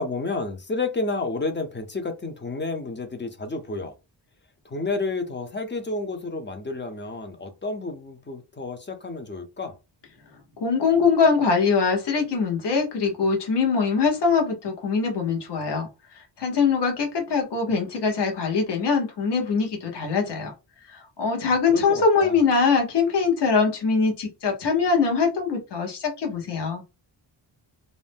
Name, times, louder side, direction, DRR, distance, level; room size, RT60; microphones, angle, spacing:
voice 1, 0.0-3.9 4.6-9.8 21.7-22.4, left 3 dB, 25° left, 0.5 m, -30 dB
voice 2, 10.6-15.9 16.1-20.5 20.8-26.8, left 5 dB, 65° left, 1.0 m, -22 dB
2.6 x 2.1 x 3.3 m
wide cardioid pair, 115°, 45 cm